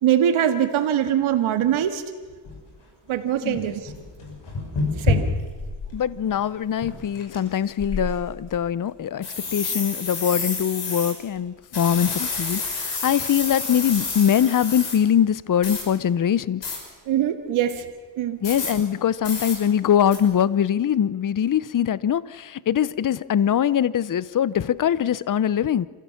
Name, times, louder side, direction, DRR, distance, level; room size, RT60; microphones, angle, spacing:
voice 1, 0.0-2.0 3.1-3.9 5.0-5.2 17.1-17.9 18.2-18.4, right 10 dB, 90° right, 7 dB, 1.9 m, -22 dB
sound 1, 1.7-1.8 2.5-2.6 3.2-3.3 3.5-6.0 6.3-6.4 6.8-7.4 7.8-8.6 9.2-11.1 11.7-15.0 15.6-15.8 16.6-16.8 18.4-18.7 19.2-19.6 20.1-20.2, left 4 dB, 60° left, 5.9 m, -28 dB
voice 2, 5.9-16.6 18.4-25.9, left 9 dB, 40° left, 19 dB, 0.8 m, -22 dB
27.0 x 16.0 x 7.2 m, 1.4 s
cardioid pair, 75°, 47 cm